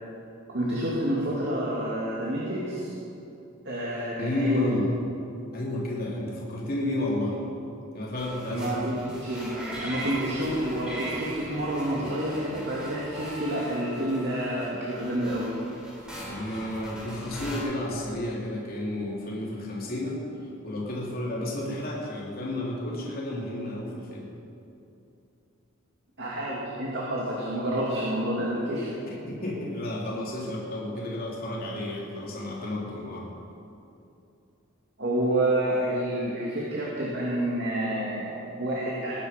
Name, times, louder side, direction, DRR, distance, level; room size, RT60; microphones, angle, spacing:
voice 1, 0.5-2.9 3.6-4.7 8.5-15.5 26.2-28.9 35.0-39.1, right 1 dB, 55° right, -5 dB, 2.4 m, -29 dB
voice 2, 4.2-4.9 5.5-7.4 7.9-9.0 16.3-20.2 20.6-24.3 29.0-33.3, left 1 dB, 45° left, -5 dB, 3.2 m, -31 dB
sound 1, 8.2-17.6, right 1 dB, 5° right, 3.5 m, -39 dB
20.0 x 10.5 x 5.1 m, 2.7 s
head